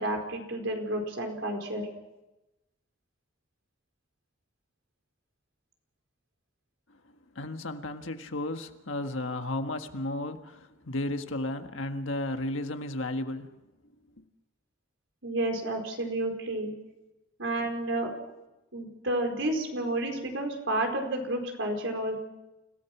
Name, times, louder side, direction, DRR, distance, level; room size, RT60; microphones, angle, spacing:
voice 1, 0.0-1.8 15.2-16.7 17.4-18.1 18.7-22.2, right 1 dB, 75° right, 4.7 m, -30 dB
voice 2, 7.3-13.5 14.2-14.3, left 1 dB, 85° left, 1.6 m, -33 dB
29.0 x 17.0 x 6.1 m
head